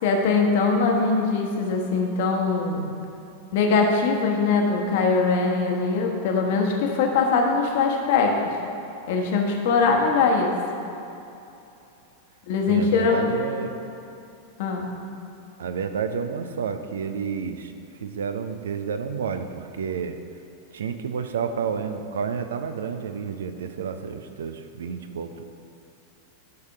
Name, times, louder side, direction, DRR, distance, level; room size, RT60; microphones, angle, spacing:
voice 1, 0.0-2.9 3.5-8.3 9.1-10.5 12.5-13.3 14.6-14.9, left 4 dB, 50° left, 2 dB, 1.2 m, -22 dB
voice 2, 12.7-13.7 15.6-17.7 18.0-20.2 20.7-25.4, right 6 dB, 65° right, 8 dB, 0.5 m, -30 dB
11.5 x 4.9 x 4.8 m, 2.8 s
figure-of-eight pair, 90°, 0 cm